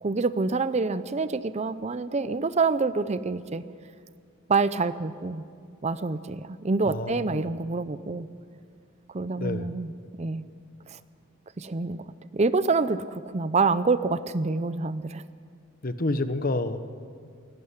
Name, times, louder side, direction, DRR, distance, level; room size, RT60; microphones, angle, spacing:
voice 1, 0.0-3.6 4.5-5.4 5.8-8.3 9.1-9.9 10.2-10.4 10.9-11.0 11.6-12.0 12.3-15.2, right 4 dB, 30° right, 14 dB, 0.5 m, -26 dB
voice 2, 6.8-7.5 9.4-9.7 15.8-16.8, left 2 dB, 45° left, 11 dB, 1.0 m, -29 dB
17.5 x 17.0 x 9.7 m, 2.1 s
head